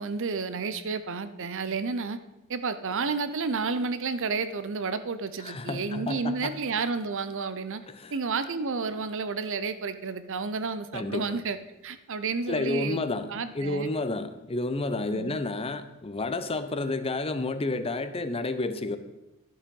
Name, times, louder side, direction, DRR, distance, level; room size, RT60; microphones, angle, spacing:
voice 1, 0.0-2.2 2.5-7.8 8.1-11.6 11.8-13.0 13.3-13.9 15.1-15.4, right 4 dB, 60° right, 12 dB, 0.7 m, -31 dB
voice 2, 5.4-6.6 7.9-8.1 10.9-11.4 12.5-19.0, left 2 dB, 25° left, 11 dB, 0.6 m, -31 dB
11.5 x 7.2 x 5.4 m, 0.97 s
head